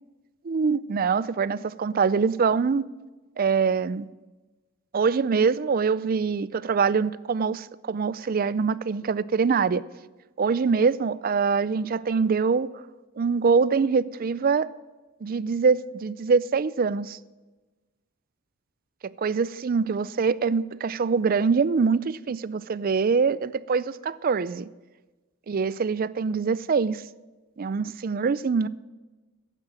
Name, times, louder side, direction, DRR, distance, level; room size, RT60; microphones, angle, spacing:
voice 1, 0.4-2.9 3.4-4.1 4.9-9.8 10.4-12.7 13.2-14.7 15.2-17.2 19.2-24.7 25.5-27.0 27.6-28.7, right 5 dB, 45° right, 0.4 m, -24 dB
12.5 x 9.1 x 7.5 m
head